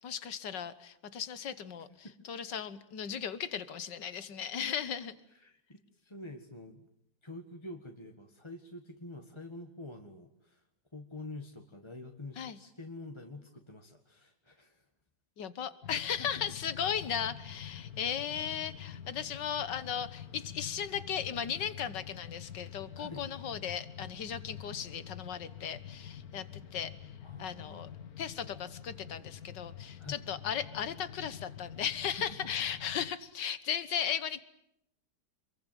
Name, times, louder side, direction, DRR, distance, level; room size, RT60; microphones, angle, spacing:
voice 1, 0.0-5.2 12.4-12.6 15.4-27.9 28.2-34.4, left 8 dB, 85° left, 14 dB, 2.0 m, -36 dB
voice 2, 5.3-6.9 7.2-10.6 10.9-14.8 16.2-16.3 23.0-23.3 27.2-27.9 30.0-30.2 32.1-32.2, left 2 dB, 15° left, 3 dB, 1.7 m, -47 dB
sound 1, 15.8-33.1, left 9 dB, 60° left, 1.8 m, -47 dB
27.5 x 22.5 x 9.2 m, 0.77 s
omnidirectional pair, 1.8 m